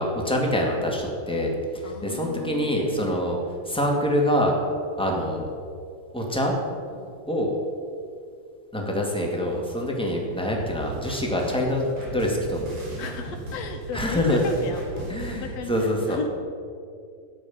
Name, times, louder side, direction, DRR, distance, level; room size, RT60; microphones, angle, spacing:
voice 1, 0.0-1.5 1.8-3.4 3.7-4.5 5.0-5.5 6.1-6.5 7.3-7.5 8.7-12.7 13.9-14.4 15.1-16.2, left 1 dB, ahead, -1 dB, 1.8 m, -25 dB
voice 2, 1.8-3.3 6.9-7.2 13.0-16.3, left 4 dB, 65° left, 4 dB, 2.5 m, -35 dB
sound 1, 10.5-15.3, right 2 dB, 80° right, 5.6 m, -37 dB
13.5 x 10.5 x 7.2 m, 2.4 s
omnidirectional pair, 3.3 m